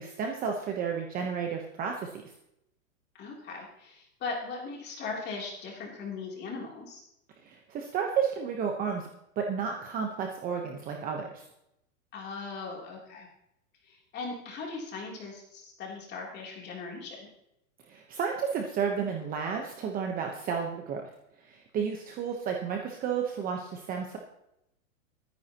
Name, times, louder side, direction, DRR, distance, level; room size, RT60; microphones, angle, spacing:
voice 1, 0.0-2.2 7.4-9.1 9.4-11.4 17.9-21.0 21.5-24.2, right 6 dB, 20° right, 2 dB, 1.0 m, -32 dB
voice 2, 3.2-7.0 12.1-13.3 13.8-17.3, left 4 dB, 25° left, -1 dB, 3.2 m, -39 dB
23.5 x 9.7 x 3.0 m, 0.81 s
supercardioid pair, 155°, 43 cm